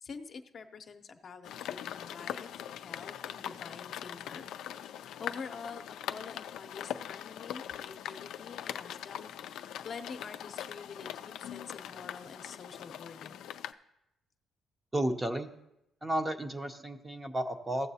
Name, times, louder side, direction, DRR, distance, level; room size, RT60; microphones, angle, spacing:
voice 1, 0.0-2.5 2.7-4.5 4.8-5.8 6.1-13.4, left 5 dB, 45° left, 6 dB, 0.7 m, -46 dB
sound 1, 1.4-13.7, left 10 dB, 80° left, 0.3 m, -41 dB
voice 2, 14.9-15.5 16.0-17.9, right 1 dB, 15° right, 6 dB, 0.6 m, -32 dB
16.5 x 7.1 x 2.8 m, 0.86 s
cardioid pair, 120°, 0 cm